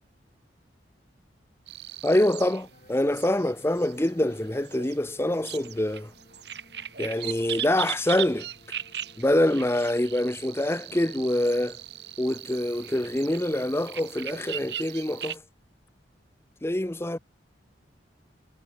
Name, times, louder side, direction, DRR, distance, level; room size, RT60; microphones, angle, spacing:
sound 1, 1.7-15.4, right 11 dB, 65° right, 4.5 m, -39 dB
voice 1, 2.0-6.1 7.0-8.5 9.2-11.8 12.2-15.4 16.6-17.2, left 1 dB, 15° left, 0.7 m, -25 dB
sound 2, 2.7-14.8, left 1 dB, 45° left, 7.0 m, -58 dB
head